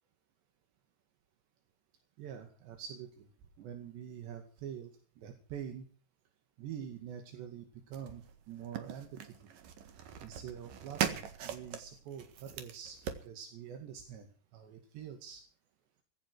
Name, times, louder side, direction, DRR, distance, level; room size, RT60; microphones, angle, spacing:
voice 1, 2.2-3.3 3.6-5.9 6.6-9.1 10.2-13.0 13.3-15.4, right 8 dB, 85° right, 5 dB, 4.4 m, -45 dB
sound 1, 7.9-13.3, right 8 dB, 60° right, 3.0 m, -40 dB
16.0 x 15.5 x 4.7 m, 0.40 s
omnidirectional pair, 4.9 m